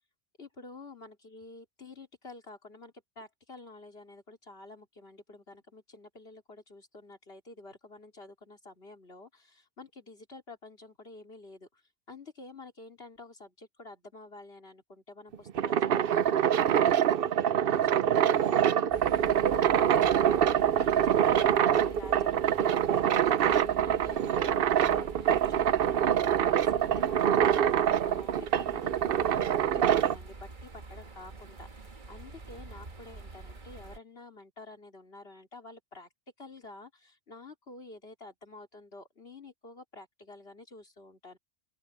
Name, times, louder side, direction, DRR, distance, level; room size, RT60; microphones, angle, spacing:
voice 1, 0.4-11.8 12.1-24.5 24.8-36.1 36.4-41.4, left 2 dB, 65° left, 3.7 m, -49 dB
sound 1, 15.3-30.2, right 9 dB, 65° right, 0.8 m, -25 dB
sound 2, 18.9-34.0, right 3 dB, 50° right, 1.6 m, -47 dB
open air
omnidirectional pair, 1.1 m